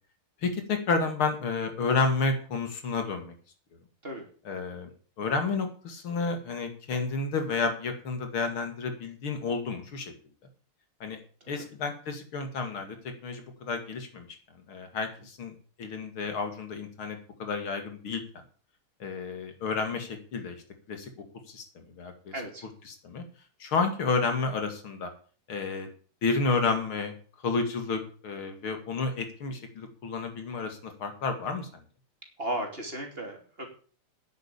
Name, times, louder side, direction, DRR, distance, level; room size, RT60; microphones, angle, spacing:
voice 1, 0.4-3.3 4.4-4.9 5.2-10.1 11.0-11.2 11.5-14.3 14.7-18.2 19.0-20.5 20.9-21.1 21.5-22.3 22.9-23.2 23.6-25.1 25.5-25.9 26.2-27.1 27.4-31.7, left 4 dB, 75° left, 6 dB, 3.2 m, -31 dB
voice 2, 22.3-22.7 32.4-33.7, right 1 dB, 25° right, 2 dB, 3.1 m, -35 dB
10.0 x 8.3 x 8.6 m, 0.42 s
omnidirectional pair, 2.3 m